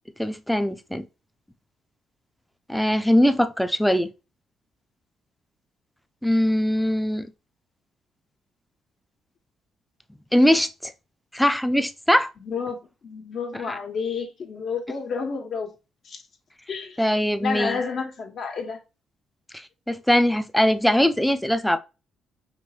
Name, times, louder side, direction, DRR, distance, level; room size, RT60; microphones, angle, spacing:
voice 1, 0.2-1.0 2.7-4.1 6.2-7.3 10.3-10.9 11.3-12.3 13.5-13.8 17.0-17.8 19.9-21.8, equal, 5° left, 0.5 m, -21 dB
voice 2, 12.4-15.7 16.0-16.2 16.7-17.0 17.4-18.8, left 5 dB, 60° left, 1.5 m, -30 dB
5.1 x 3.1 x 3.0 m
cardioid pair, 90°, 0 cm